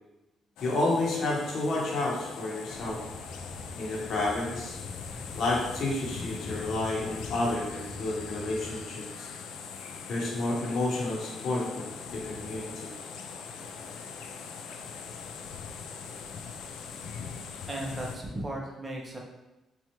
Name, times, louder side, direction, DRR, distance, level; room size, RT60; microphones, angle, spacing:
sound 1, 0.6-18.2, left 6 dB, 85° left, 0.3 m, -41 dB
voice 1, 0.6-3.0 3.8-4.8 5.4-9.3 10.1-12.9, left 2 dB, 60° left, -3 dB, 0.8 m, -30 dB
Motorcycle / Engine starting / Idling, 2.7-8.8, left 1 dB, 15° left, 1.4 m, -45 dB
voice 2, 17.7-19.2, right 1 dB, 25° right, -1 dB, 0.8 m, -36 dB
4.3 x 2.3 x 2.9 m, 1.0 s
cardioid pair, 90°, 0 cm